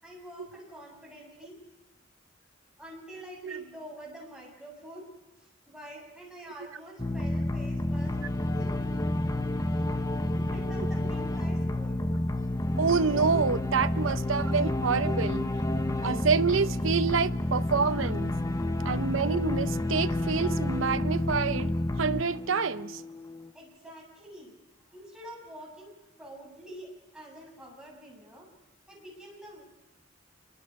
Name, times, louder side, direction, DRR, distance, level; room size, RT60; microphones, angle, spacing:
voice 1, 0.0-1.6 2.8-5.1 5.4-8.2 8.5-8.8 10.2-12.0 23.5-24.6 24.9-28.5 28.9-29.6, equal, 5° right, 7.3 m, -47 dB
sound 1, 7.0-23.5, left 1 dB, 20° left, 0.8 m, -30 dB
voice 2, 12.8-15.5 16.0-18.4 18.8-23.0, right 5 dB, 85° right, 0.8 m, -27 dB
28.0 x 24.0 x 4.8 m
head